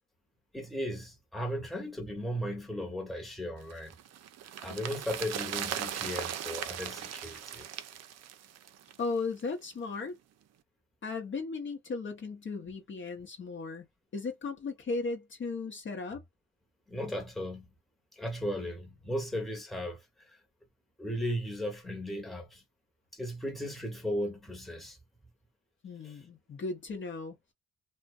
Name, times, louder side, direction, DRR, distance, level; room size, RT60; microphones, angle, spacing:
voice 1, 0.5-3.9 4.6-7.7 16.9-17.7 18.2-20.0 21.0-22.6 23.1-25.0 26.0-26.1, equal, ahead, 0.9 m, -36 dB
sound 1, 3.7-9.1 9.4-9.5, right 10 dB, 60° right, 0.5 m, -38 dB
voice 2, 9.0-10.2 11.0-13.9 14.1-16.2 25.8-27.4, left 4 dB, 40° left, 0.8 m, -36 dB
2.5 x 2.2 x 2.4 m
cardioid pair, 90°, 30 cm